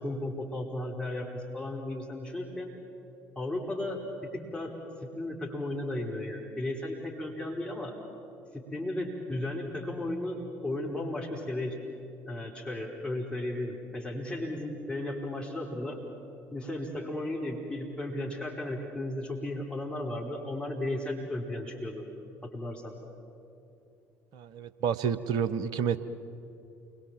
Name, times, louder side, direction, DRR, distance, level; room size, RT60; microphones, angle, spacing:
voice 1, 0.0-2.7 3.3-4.7 5.2-7.9 8.5-11.8 12.2-16.0 16.5-22.0 22.4-22.9, left 1 dB, 10° left, -1 dB, 4.6 m, -35 dB
voice 2, 24.3-26.0, right 7 dB, 55° right, 12 dB, 1.1 m, -29 dB
28.5 x 23.0 x 7.6 m, 2.8 s
figure-of-eight pair, 55°, 8 cm